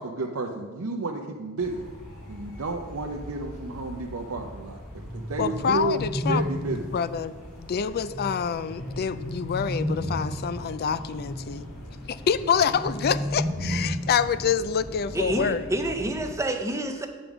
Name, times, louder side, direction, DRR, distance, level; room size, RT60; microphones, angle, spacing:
voice 1, 0.0-1.9 2.3-4.8 5.1-6.0 6.3-6.9, right 3 dB, 70° right, 1 dB, 0.6 m, -31 dB
sound 1, 1.6-16.4, equal, 70° left, 2.3 m, -41 dB
sound 2, 5.0-7.0 8.6-10.5 12.3-14.3, equal, 25° left, 1.8 m, -31 dB
voice 2, 5.4-6.4 6.9-7.3 7.6-11.7 12.1-15.6, left 7 dB, 45° left, 14 dB, 0.4 m, -26 dB
voice 3, 15.1-17.1, right 1 dB, 15° right, 5 dB, 0.5 m, -28 dB
8.8 x 5.1 x 6.0 m, 1.4 s
head